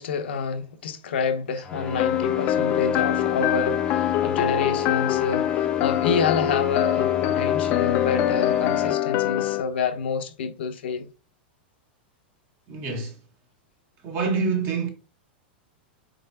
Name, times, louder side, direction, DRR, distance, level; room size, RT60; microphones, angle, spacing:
voice 1, 0.0-11.1, left 5 dB, 80° left, 0.8 m, -28 dB
sound 1, 1.6-8.9, left 4 dB, 15° left, 0.7 m, -34 dB
sound 2, 2.0-9.6, left 12 dB, 45° left, 0.4 m, -24 dB
voice 2, 12.7-13.2 14.0-14.9, right 4 dB, 40° right, 1.4 m, -26 dB
4.5 x 3.9 x 2.7 m
hypercardioid pair, 130°, 6 cm